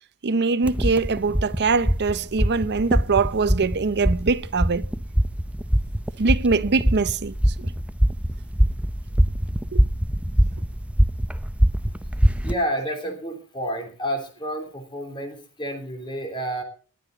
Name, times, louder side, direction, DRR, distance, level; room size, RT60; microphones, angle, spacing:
voice 1, 0.2-4.8 6.2-7.7 9.7-9.8, right 4 dB, 50° right, 0.6 m, -23 dB
sound 1, 0.6-12.6, equal, 5° right, 0.5 m, -23 dB
voice 2, 12.4-16.6, equal, 20° left, 3.3 m, -30 dB
21.0 x 10.0 x 3.9 m
head